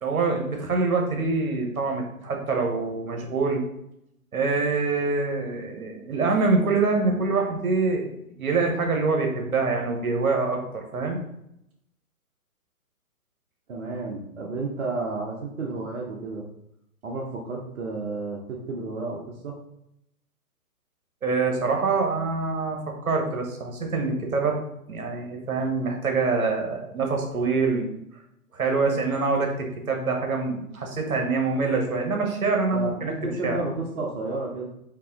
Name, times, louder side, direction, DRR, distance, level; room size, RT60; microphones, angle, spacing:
voice 1, 0.0-3.6 4.3-11.2 21.2-24.6 24.9-27.9 28.5-33.1 33.4-33.6, right 4 dB, 70° right, 1 dB, 1.2 m, -25 dB
voice 2, 13.7-16.5 17.0-19.6 32.7-34.7, right 3 dB, 55° right, -2 dB, 0.9 m, -31 dB
4.6 x 3.0 x 3.6 m, 0.81 s
figure-of-eight pair, 135°, 44 cm